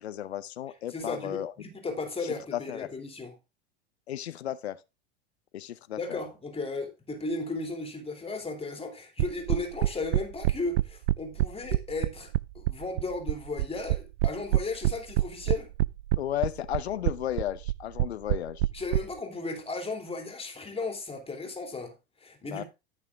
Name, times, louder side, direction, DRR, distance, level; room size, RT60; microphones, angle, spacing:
voice 1, 0.0-1.5 2.5-2.9 4.1-4.8 5.5-6.2 16.2-18.6 22.5-22.6, left 12 dB, 85° left, 0.8 m, -34 dB
voice 2, 0.9-3.3 6.0-15.7 18.7-21.9 22.2-22.6, left 3 dB, 20° left, 2.8 m, -35 dB
sound 1, 9.2-19.0, right 17 dB, 70° right, 0.5 m, -25 dB
13.5 x 6.5 x 3.6 m
hypercardioid pair, 85°, 31 cm